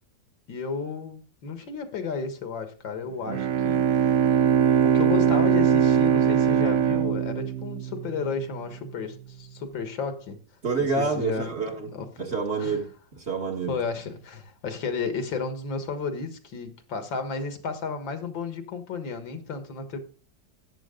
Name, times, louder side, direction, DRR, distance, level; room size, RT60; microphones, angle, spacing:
voice 1, 0.5-4.4 4.8-10.4 11.0-11.5 11.9-12.1 12.6-12.8 13.7-20.0, left 5 dB, 80° left, 8 dB, 2.3 m, -33 dB
Bowed string instrument, 3.3-8.5, right 8 dB, 60° right, 0.9 m, -21 dB
voice 2, 10.6-11.9 12.2-13.7, right 4 dB, 35° right, 2 dB, 1.8 m, -28 dB
13.5 x 9.1 x 3.8 m, 0.38 s
omnidirectional pair, 2.1 m